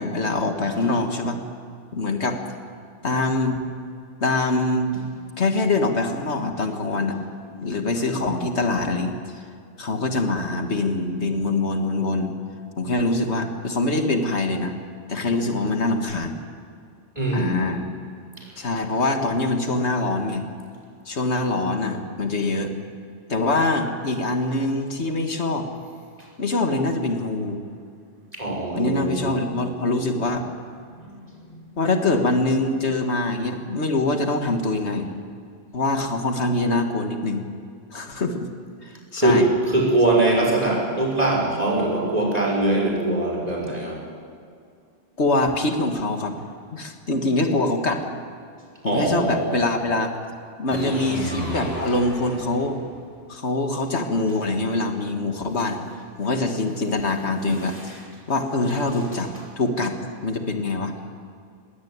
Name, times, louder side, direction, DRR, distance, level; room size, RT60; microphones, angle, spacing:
voice 1, 0.0-1.4 1.9-2.4 3.0-3.6 4.2-4.9 5.4-7.2 7.6-9.1 9.8-12.3 12.8-14.7 15.1-16.4 17.3-17.8 18.6-20.5 21.1-22.7 23.3-25.7 26.4-27.6 28.7-30.4 31.8-35.1 35.7-37.4 37.9-38.5 38.8-39.5 45.2-46.4 46.7-48.0 48.8-50.1 50.6-52.8 53.3-55.8 56.2-58.0 58.3-59.3 59.6-61.0, left 2 dB, 85° left, 5 dB, 2.1 m, -24 dB
voice 2, 17.2-17.7 28.3-29.2 39.1-39.4 39.7-44.0 48.8-49.5, right 2 dB, 35° right, -2 dB, 6.0 m, -22 dB
sound 1, 50.7-53.0, equal, 25° left, 7.0 m, -32 dB
20.0 x 17.0 x 9.5 m, 2.3 s
omnidirectional pair, 1.1 m